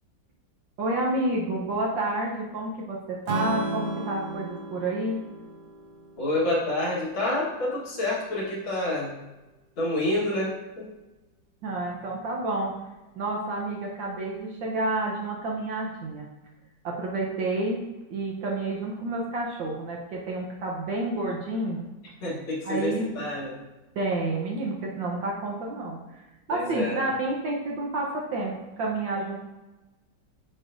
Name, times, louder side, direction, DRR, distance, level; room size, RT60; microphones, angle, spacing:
voice 1, 0.8-5.2 11.6-12.7 13.1-16.3 16.8-17.8 18.1-21.8 22.6-23.1 23.9-26.2 26.5-29.4, right 2 dB, 70° right, -2 dB, 1.5 m, -29 dB
Strum, 3.3-7.5, right 2 dB, 50° right, 0.8 m, -35 dB
voice 2, 6.2-9.1 9.8-10.9 22.2-23.6 26.5-27.0, left 1 dB, 85° left, -6 dB, 2.3 m, -28 dB
9.2 x 4.6 x 2.5 m, 1.1 s
omnidirectional pair, 2.1 m